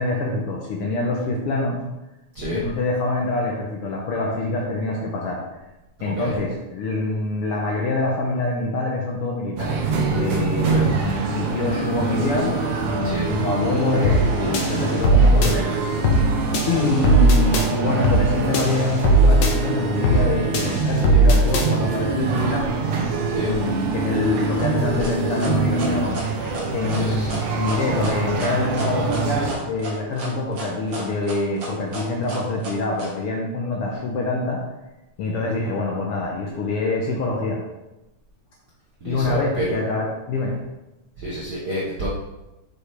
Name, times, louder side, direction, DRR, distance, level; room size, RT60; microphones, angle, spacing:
voice 1, 0.0-1.8 2.5-5.4 6.0-9.8 10.1-15.7 16.7-22.7 23.4-26.2 26.7-34.6 35.2-37.6 39.0-40.6, left 2 dB, 70° left, -1 dB, 1.5 m, -25 dB
voice 2, 2.3-2.7 6.0-6.3 10.6-10.9 13.0-13.3 23.3-23.5 26.9-27.4 39.0-39.8 41.2-42.1, equal, 60° right, -6 dB, 1.0 m, -29 dB
sound 1, 9.6-29.5, right 4 dB, 80° right, 2.4 m, -25 dB
sound 2, 14.0-14.3 14.5-15.5 16.0-16.3 16.5-17.7 18.0-18.3 18.5-19.5 20.0-20.3 20.5-21.7, right 1 dB, 90° left, 0.9 m, -17 dB
sound 3, 24.6-33.1, right 2 dB, 40° right, 1.8 m, -34 dB
7.4 x 6.3 x 3.4 m, 1.0 s
omnidirectional pair, 3.4 m